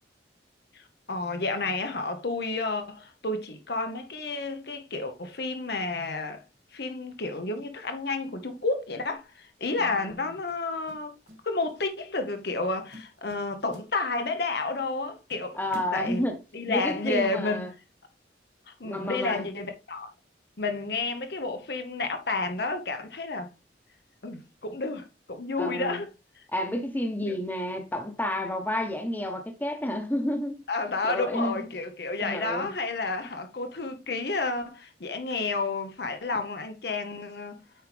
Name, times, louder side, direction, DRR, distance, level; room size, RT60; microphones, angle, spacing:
voice 1, 1.1-6.4 6.7-11.1 11.4-15.6 15.9-16.2 16.5-17.6 18.7-20.1 20.6-23.5 24.2-26.1 27.2-27.4 30.7-37.6, left 3 dB, 60° left, 0.9 m, -31 dB
sound 1, 9.1-9.4 10.5-11.4 11.7-12.0 12.5-12.6 12.9-14.4 14.8-14.9 15.3-16.6, left 1 dB, 40° right, 2.0 m, -49 dB
voice 2, 15.5-16.4 16.7-17.7 18.8-19.5 25.6-26.0 26.5-30.5 31.0-31.7 32.2-32.7, left 1 dB, 10° left, 1.1 m, -30 dB
8.7 x 4.8 x 3.3 m
head